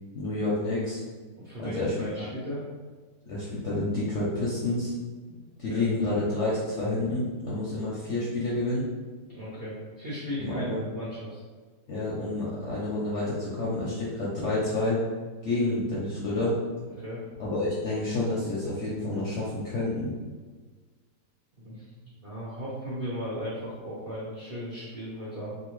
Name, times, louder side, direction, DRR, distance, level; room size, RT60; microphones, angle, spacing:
voice 1, 0.1-1.0 1.6-1.9 2.2-2.3 3.3-4.9 5.6-8.9 10.4-10.8 11.9-15.0 15.4-16.6 17.4-20.1, left 2 dB, 65° left, -7 dB, 0.7 m, -29 dB
voice 2, 1.3-2.6 5.2-5.4 5.7-5.9 9.2-11.4 17.0-17.2 21.6-25.6, equal, 55° right, -8 dB, 0.7 m, -36 dB
2.7 x 2.7 x 3.0 m, 1.4 s
omnidirectional pair, 1.8 m